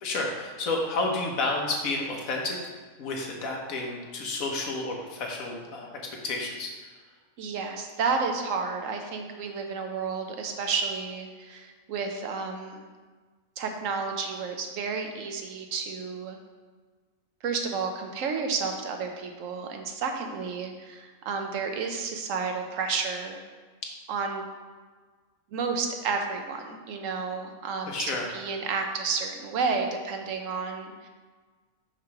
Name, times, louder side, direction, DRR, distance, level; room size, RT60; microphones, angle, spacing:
voice 1, 0.0-2.7 3.0-6.7 27.9-28.3, left 2 dB, 65° left, 0 dB, 1.4 m, -31 dB
voice 2, 7.4-12.9 13.6-16.4 17.4-23.4 24.1-24.5 25.5-31.1, right 5 dB, 65° right, 4 dB, 1.0 m, -31 dB
5.9 x 3.2 x 5.7 m, 1.4 s
omnidirectional pair, 1.6 m